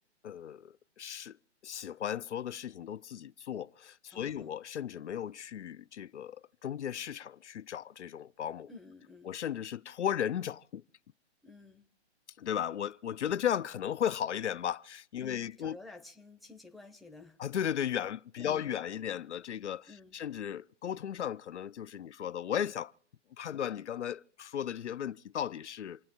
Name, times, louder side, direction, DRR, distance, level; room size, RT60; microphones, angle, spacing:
voice 1, 0.2-1.4 1.6-8.7 9.2-10.8 12.4-15.8 17.4-22.9 23.4-26.0, left 9 dB, 80° left, 0.6 m, -36 dB
voice 2, 4.1-4.6 8.7-9.3 11.4-11.9 15.2-17.4 18.4-18.7 19.9-20.2, left 3 dB, ahead, 0.7 m, -52 dB
28.0 x 9.4 x 4.5 m
hypercardioid pair, 135°, 35 cm